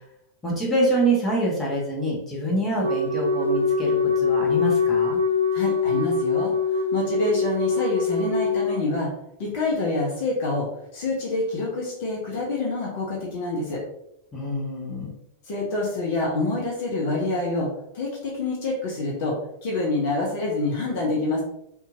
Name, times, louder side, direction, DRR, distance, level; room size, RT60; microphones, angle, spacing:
voice 1, 0.4-5.2 14.3-15.1, right 1 dB, 15° left, -4 dB, 1.3 m, -25 dB
Wind instrument woodwind instrument, 2.8-8.9, left 4 dB, 80° right, 0.4 m, -23 dB
voice 2, 5.5-9.1 9.4-10.7 10.9-13.8 15.5-17.7 17.9-21.4, left 2 dB, 50° left, -3 dB, 1.0 m, -27 dB
4.2 x 2.9 x 2.6 m, 0.77 s
figure-of-eight pair, 90°, 0 cm